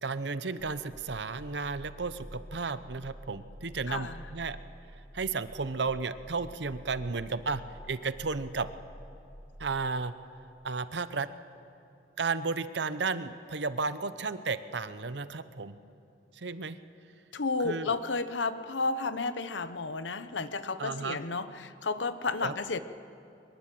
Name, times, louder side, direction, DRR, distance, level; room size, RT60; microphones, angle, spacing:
voice 1, 0.0-4.6 5.1-7.6 7.9-8.7 9.6-10.1 10.6-11.3 12.2-15.8 16.4-16.8 17.6-18.0 20.8-21.2 22.4-22.5, right 4 dB, 70° right, 13 dB, 0.9 m, -33 dB
sound 1, 0.6-10.0, equal, 50° right, 2.2 m, -49 dB
voice 2, 3.9-4.2 17.3-22.8, left 3 dB, 85° left, 12 dB, 0.9 m, -32 dB
23.0 x 22.0 x 7.7 m, 2.7 s
head